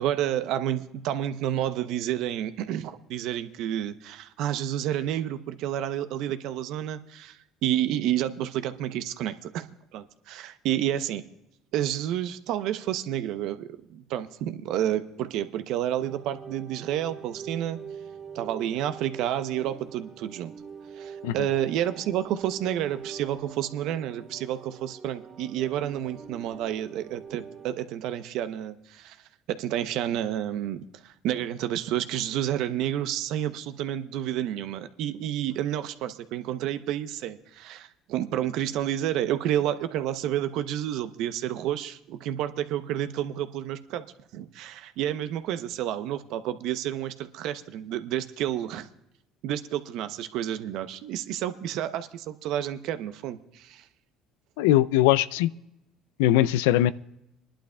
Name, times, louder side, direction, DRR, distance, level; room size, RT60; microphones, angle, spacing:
voice 1, 0.0-9.6 9.9-11.2 11.7-17.8 18.3-20.5 20.9-29.2 29.5-44.0 44.3-48.9 49.4-53.8, right 11 dB, 70° right, 11 dB, 0.7 m, -30 dB
sound 1, 16.0-27.7, right 6 dB, 40° right, 1.5 m, -44 dB
voice 2, 54.6-55.5 56.2-56.9, left 14 dB, 85° left, 17 dB, 0.3 m, -21 dB
24.0 x 11.5 x 2.3 m, 0.86 s
supercardioid pair, 80°, 0 cm